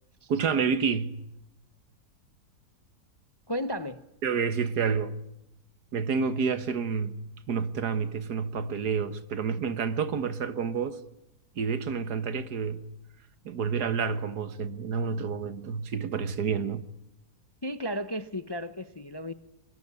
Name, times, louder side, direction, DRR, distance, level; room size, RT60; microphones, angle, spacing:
voice 1, 0.3-1.2 4.2-5.2 5.9-11.0 11.6-12.8 13.5-16.9, right 6 dB, 70° right, 1.8 m, -29 dB
voice 2, 3.5-4.0 17.6-19.3, equal, 20° left, 0.6 m, -34 dB
23.0 x 21.0 x 9.7 m
omnidirectional pair, 1.8 m